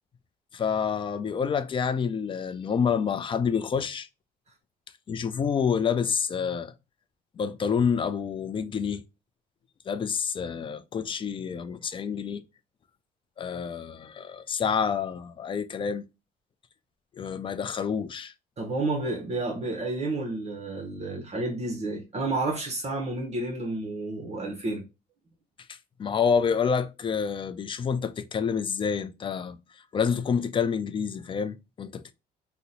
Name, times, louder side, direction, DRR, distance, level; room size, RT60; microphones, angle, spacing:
voice 1, 0.5-4.1 5.1-6.7 7.4-9.0 9.9-12.4 13.4-16.0 17.2-18.3 25.7-29.6 29.9-32.1, left 6 dB, 30° left, 0.4 m, -28 dB
voice 2, 18.6-24.8, right 2 dB, 40° right, 0.8 m, -30 dB
2.8 x 2.1 x 3.9 m
cardioid pair, 110°, 17 cm